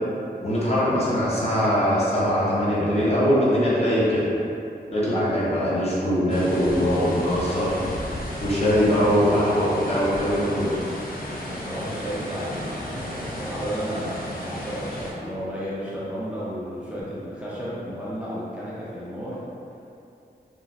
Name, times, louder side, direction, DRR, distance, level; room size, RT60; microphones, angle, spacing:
voice 1, 0.4-4.3 4.9-7.7 8.4-10.7, equal, 35° left, -9 dB, 0.9 m, -22 dB
sound 1, 6.3-15.1, equal, 55° left, 0.5 m, -34 dB
voice 2, 11.4-19.4, equal, 5° right, -9 dB, 0.6 m, -33 dB
3.0 x 2.4 x 2.4 m, 2.6 s
wide cardioid pair, 60°, 17 cm